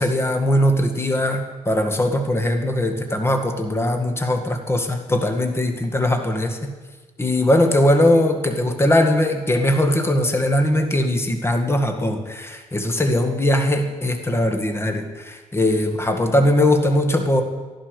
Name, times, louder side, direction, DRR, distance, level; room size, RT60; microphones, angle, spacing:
voice 1, 0.0-6.7 7.2-17.4, left 1 dB, 20° left, 5 dB, 1.9 m, -20 dB
14.0 x 11.5 x 6.6 m, 1.3 s
cardioid pair, 95°, 13 cm